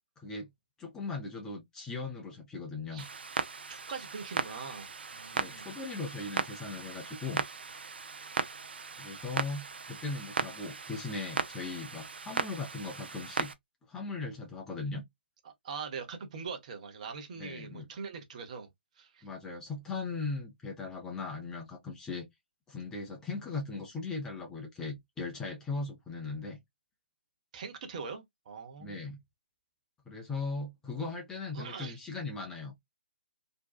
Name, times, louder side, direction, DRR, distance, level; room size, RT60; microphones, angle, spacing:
voice 1, 0.2-0.5 0.8-3.1 5.3-7.4 9.0-13.5 13.9-15.0 17.4-17.9 19.2-22.2 22.7-26.6 28.8-29.2 30.1-32.7, left 3 dB, 10° left, 0.5 m, -38 dB
Clock, 3.0-13.5, right 5 dB, 65° right, 0.4 m, -37 dB
voice 2, 3.7-5.7 15.4-18.7 19.0-19.2 27.5-29.0 31.5-32.0, right 5 dB, 40° right, 0.7 m, -42 dB
2.6 x 2.2 x 2.3 m
figure-of-eight pair, 135°, 6 cm